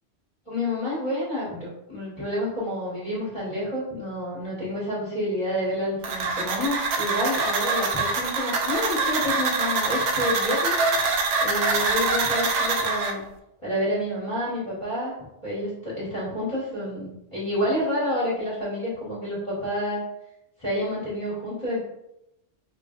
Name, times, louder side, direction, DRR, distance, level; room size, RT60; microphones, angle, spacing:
voice 1, 0.5-10.8 11.4-13.2 13.6-15.1 15.4-20.0 20.6-21.8, left 1 dB, 25° left, -11 dB, 1.5 m, -29 dB
sound 1, 6.0-13.1, right 3 dB, 80° right, 0.9 m, -24 dB
5.2 x 2.5 x 2.4 m, 0.85 s
omnidirectional pair, 1.2 m